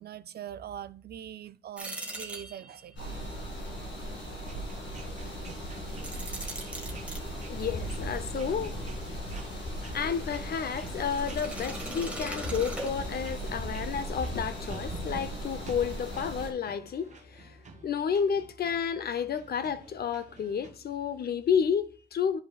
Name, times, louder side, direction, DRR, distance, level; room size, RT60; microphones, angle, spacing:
voice 1, 0.0-3.2, right 10 dB, 60° right, 0.4 m, -42 dB
sound 1, 1.8-2.9 5.9-7.2 11.1-13.4, right 1 dB, 5° right, 1.3 m, -40 dB
sound 2, 3.0-16.5, equal, 80° left, 1.9 m, -37 dB
sound 3, 4.5-20.7, right 4 dB, 40° right, 0.9 m, -50 dB
voice 2, 6.8-7.1 7.5-9.3 9.6-22.4, left 7 dB, 60° left, 0.6 m, -31 dB
11.0 x 5.3 x 2.3 m
wide cardioid pair, 145°, 18 cm